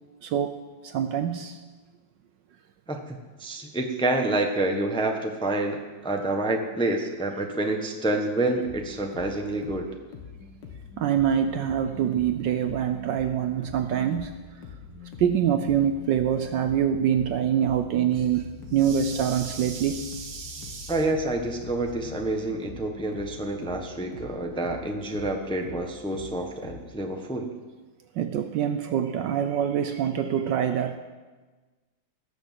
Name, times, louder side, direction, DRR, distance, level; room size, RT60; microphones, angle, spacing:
voice 1, 0.2-1.6 11.0-14.6 15.2-21.0 28.1-31.0, right 9 dB, 70° right, 9 dB, 1.2 m, -25 dB
voice 2, 2.9-9.9 20.9-27.5, right 2 dB, 5° left, 3 dB, 0.8 m, -28 dB
sound 1, 8.5-26.8, left 6 dB, 60° left, 2.1 m, -44 dB
19.0 x 6.5 x 7.5 m, 1.3 s
omnidirectional pair, 2.3 m